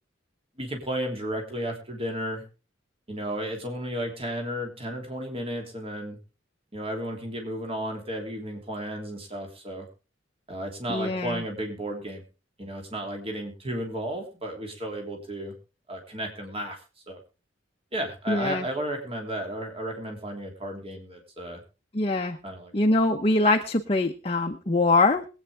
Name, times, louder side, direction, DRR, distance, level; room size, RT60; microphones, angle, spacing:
voice 1, 0.6-2.4 3.1-6.2 6.7-9.9 10.5-12.2 12.6-15.5 15.9-17.2 17.9-21.6 22.4-22.7, right 1 dB, 30° right, 2 dB, 3.1 m, -33 dB
voice 2, 10.9-11.4 18.3-18.7 21.9-22.4 22.7-25.3, left 2 dB, 30° left, 3 dB, 0.9 m, -23 dB
22.0 x 9.1 x 3.5 m, 0.33 s
head